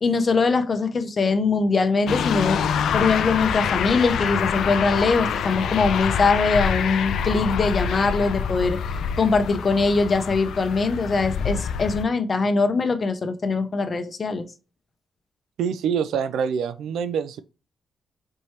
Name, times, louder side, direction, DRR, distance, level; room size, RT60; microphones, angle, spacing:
voice 1, 0.0-2.6 2.9-8.8 9.2-14.5, left 4 dB, 40° left, 0.7 m, -22 dB
sound 1, 2.1-12.0, left 7 dB, 80° left, 0.4 m, -26 dB
voice 2, 15.6-17.4, right 7 dB, 85° right, 0.3 m, -25 dB
4.5 x 3.1 x 2.8 m
cardioid pair, 90°, 0 cm